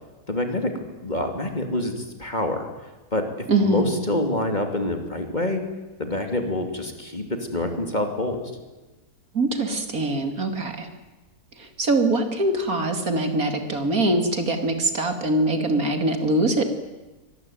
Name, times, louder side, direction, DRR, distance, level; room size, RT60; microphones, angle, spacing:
voice 1, 0.3-2.7 3.1-3.3 3.6-5.6 6.0-7.2 7.5-8.4, left 1 dB, 30° left, 5 dB, 3.2 m, -26 dB
voice 2, 3.5-4.0 9.3-10.9 11.6-16.6, right 2 dB, 65° right, 7 dB, 3.1 m, -23 dB
24.5 x 20.5 x 9.4 m, 1.1 s
omnidirectional pair, 1.6 m